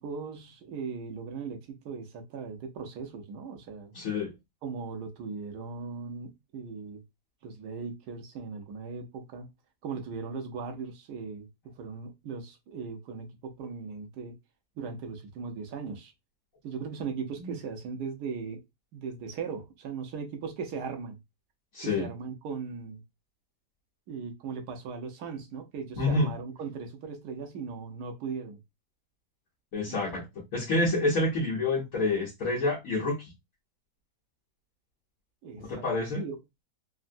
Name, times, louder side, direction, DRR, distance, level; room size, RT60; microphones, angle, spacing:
voice 1, 0.0-3.9 4.6-7.0 7.4-9.5 9.8-11.5 11.8-14.4 14.8-16.1 16.6-18.6 18.9-21.2 21.8-23.0 24.1-28.6 29.9-30.2 35.4-35.8 36.2-36.4, right 5 dB, 85° right, 1.3 m, -38 dB
voice 2, 3.9-4.3 17.4-17.5 21.7-22.1 26.0-26.3 29.7-30.3 30.5-33.3 35.6-36.2, left 2 dB, 60° left, 1.2 m, -28 dB
3.6 x 2.1 x 2.5 m
omnidirectional pair, 1.7 m